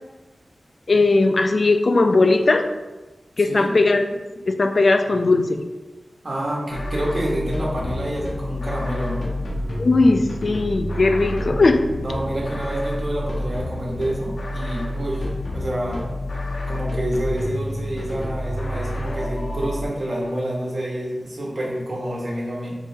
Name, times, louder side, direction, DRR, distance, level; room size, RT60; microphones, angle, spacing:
voice 1, 0.9-2.7 3.4-4.1 4.5-5.7 9.8-11.8, left 3 dB, 55° left, 6 dB, 0.3 m, -18 dB
voice 2, 6.2-9.3 11.9-16.0 16.7-22.8, right 1 dB, 60° right, -4 dB, 1.2 m, -28 dB
sound 1, 6.7-19.9, left 1 dB, 80° left, 0.7 m, -29 dB
4.5 x 2.8 x 3.3 m, 1.2 s
wide cardioid pair, 80°, 0 cm